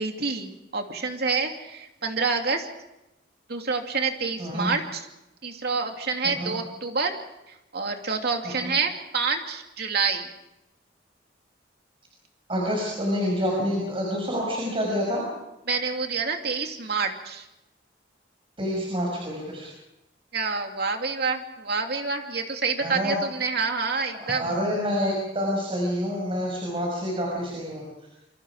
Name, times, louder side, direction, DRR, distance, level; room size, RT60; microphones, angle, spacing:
voice 1, 0.0-2.7 3.5-5.1 5.4-7.1 7.7-10.3 15.7-17.4 20.3-24.5, right 4 dB, 60° right, 4 dB, 2.7 m, -27 dB
voice 2, 4.4-4.7 6.2-6.6 8.4-8.7 12.5-15.2 18.6-19.7 22.8-23.2 24.1-27.8, equal, 30° right, -2 dB, 6.0 m, -28 dB
27.5 x 24.5 x 5.0 m, 0.93 s
head